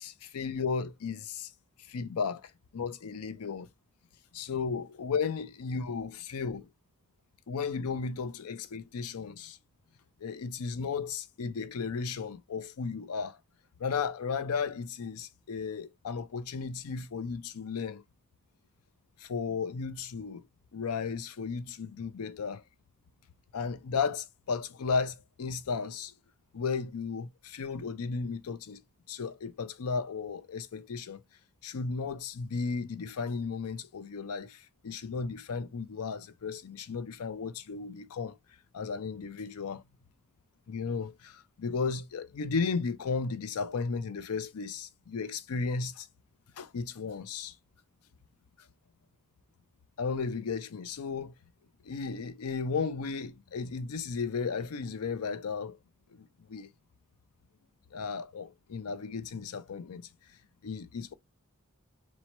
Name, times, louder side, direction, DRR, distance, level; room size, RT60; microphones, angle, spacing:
voice 1, 0.0-1.5 1.9-3.7 4.3-6.7 7.5-9.6 10.2-13.4 13.8-18.0 19.2-20.5 20.7-22.6 23.5-26.1 26.5-28.8 29.1-31.2 31.6-38.4 38.7-39.8 40.7-46.1 46.6-47.5 50.0-51.3 51.8-55.8 56.1-56.7 57.9-60.1 60.6-61.1, left 5 dB, 80° left, 0.5 m, -34 dB
4.1 x 2.0 x 4.4 m
head